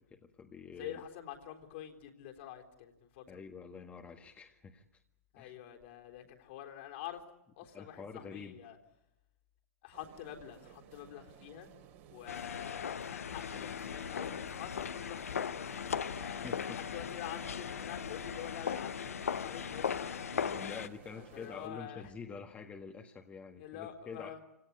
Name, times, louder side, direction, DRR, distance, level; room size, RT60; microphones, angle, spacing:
voice 1, 0.0-1.0 3.3-4.8 5.4-5.5 7.7-8.6 16.2-16.8 20.2-24.4, left 5 dB, 20° left, 3 dB, 1.7 m, -47 dB
voice 2, 0.8-3.4 5.3-7.2 7.6-8.8 9.8-11.7 12.1-15.5 16.1-20.5 21.1-22.1 23.6-24.4, left 11 dB, 50° left, 3 dB, 3.7 m, -47 dB
sound 1, 9.9-21.7, right 9 dB, 45° right, 3.0 m, -57 dB
sound 2, 12.3-20.9, left 7 dB, 75° left, 1.0 m, -38 dB
28.5 x 17.5 x 9.8 m, 0.93 s
figure-of-eight pair, 110°, 8 cm